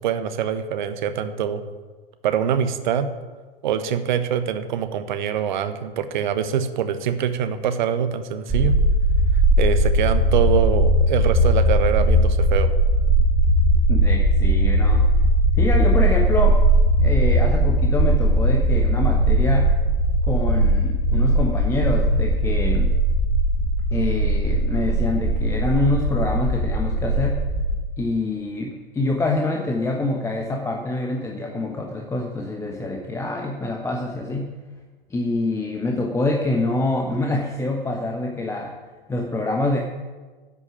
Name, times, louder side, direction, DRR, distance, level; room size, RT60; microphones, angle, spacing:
voice 1, 0.0-1.6 2.2-3.1 3.6-8.8 9.6-12.7, right 8 dB, 50° right, 10 dB, 1.2 m, -24 dB
sound 1, 8.5-27.8, right 1 dB, 15° right, 3.3 m, -19 dB
voice 2, 13.9-15.1 15.6-16.6 17.0-19.8 20.2-22.9 23.9-27.4 28.0-34.6 35.1-38.7 39.1-39.8, left 2 dB, 10° left, 1 dB, 1.2 m, -26 dB
11.0 x 8.4 x 9.8 m, 1.3 s
figure-of-eight pair, 105°, 29 cm